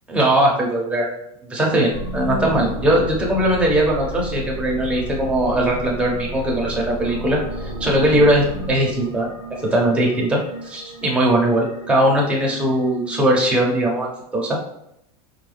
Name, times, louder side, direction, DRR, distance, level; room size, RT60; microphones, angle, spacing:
voice 1, 0.1-1.1 1.5-9.3 9.6-14.6, right 1 dB, 5° right, -2 dB, 0.7 m, -20 dB
sound 1, 1.9-13.8, equal, 35° left, 1.2 m, -33 dB
4.7 x 2.2 x 3.2 m, 0.77 s
supercardioid pair, 160°, 19 cm